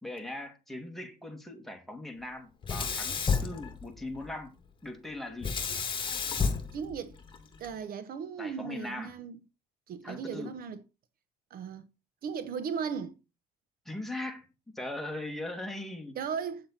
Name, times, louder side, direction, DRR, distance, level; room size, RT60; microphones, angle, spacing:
voice 1, 0.0-4.5 4.8-5.6 8.4-9.1 10.0-10.5 13.9-14.5 14.8-16.2, left 1 dB, ahead, 2.1 m, -39 dB
Sink (filling or washing), 2.6-4.3 5.4-7.7, left 5 dB, 30° left, 1.8 m, -31 dB
voice 2, 6.7-7.2 7.6-9.4 9.9-10.8 11.5-11.9 12.2-13.2 16.1-16.7, right 6 dB, 60° right, 1.0 m, -36 dB
8.5 x 7.3 x 4.2 m
cardioid pair, 110°, 17 cm